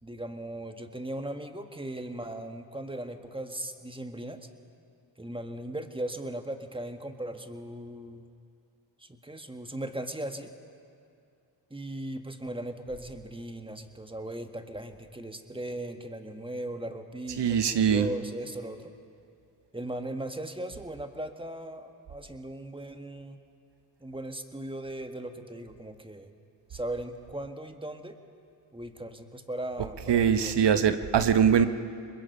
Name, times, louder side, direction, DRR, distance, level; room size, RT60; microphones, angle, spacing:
voice 1, 0.0-4.5 5.2-8.2 9.0-10.5 11.7-18.9 19.7-23.4 24.0-26.3 26.7-28.2 28.7-30.6, right 1 dB, 10° right, 6 dB, 1.7 m, -38 dB
voice 2, 17.4-18.1 30.1-31.7, right 8 dB, 60° right, 10 dB, 1.0 m, -22 dB
23.0 x 21.0 x 5.5 m, 2.4 s
supercardioid pair, 50°, 47 cm